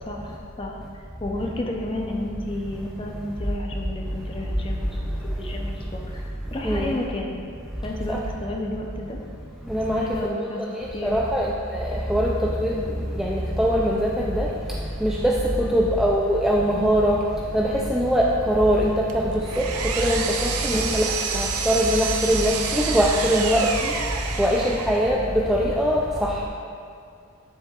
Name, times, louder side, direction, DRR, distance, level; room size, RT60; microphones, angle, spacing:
voice 1, 0.0-7.4 7.8-9.2 9.9-10.6 10.9-11.2 15.5-15.8 20.7-21.0, left 1 dB, 25° left, 0 dB, 0.7 m, -32 dB
voice 2, 6.6-7.0 8.1-8.2 9.7-10.0 10.7-12.3 12.6-12.8 13.2-14.5 15.0-17.2 17.5-19.2 20.0-21.0 21.3-23.9 24.4-26.5, equal, ahead, -3 dB, 0.3 m, -22 dB
Power tool, 19.1-25.2, right 5 dB, 90° right, 0.6 m, -29 dB
9.4 x 7.5 x 2.5 m, 2.3 s
head